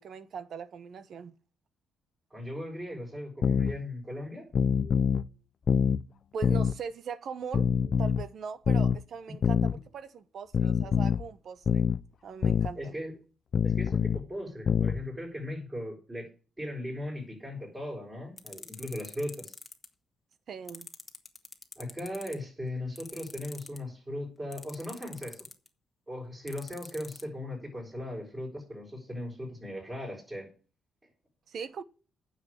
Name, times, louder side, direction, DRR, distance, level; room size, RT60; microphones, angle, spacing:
voice 1, 0.0-1.3 6.3-7.7 8.0-11.9 12.2-13.0 20.5-20.9 31.5-31.8, right 6 dB, 60° right, 1.1 m, -40 dB
voice 2, 2.3-4.5 12.7-13.1 13.6-16.3 16.6-19.5 21.8-25.5 26.1-30.5, left 1 dB, 20° right, 6.4 m, -38 dB
sound 1, 3.4-3.7 4.5-5.3 5.7-6.0 6.4-6.8 7.5-8.3 8.7-9.0 9.4-9.8 10.5-11.2 11.7-12.0 12.4-12.7 13.5-14.2 14.7-15.0, left 7 dB, 50° left, 0.5 m, -25 dB
sound 2, 18.4-19.9 20.7-22.4 23.0-23.8 24.5-25.7 26.5-27.2, left 3 dB, 20° left, 1.5 m, -44 dB
9.6 x 6.8 x 8.8 m
cardioid pair, 90°, 0 cm